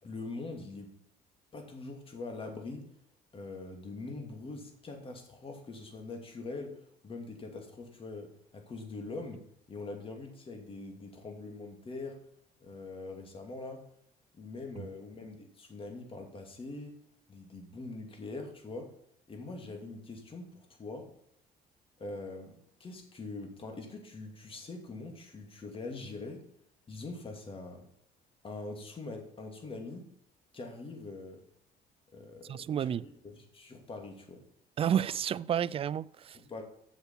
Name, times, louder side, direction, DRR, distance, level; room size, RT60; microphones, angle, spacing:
voice 1, 0.0-0.9 1.5-2.9 3.3-12.2 12.6-13.8 14.3-17.0 17.3-18.9 19.3-21.1 22.0-26.4 26.9-27.8 28.4-30.1 30.5-31.4 32.1-34.4 36.3-36.6, left 3 dB, 30° left, 2.7 m, -43 dB
voice 2, 32.5-33.0 34.8-36.4, right 9 dB, 35° right, 0.4 m, -31 dB
7.4 x 7.2 x 7.3 m
cardioid pair, 110°, 17 cm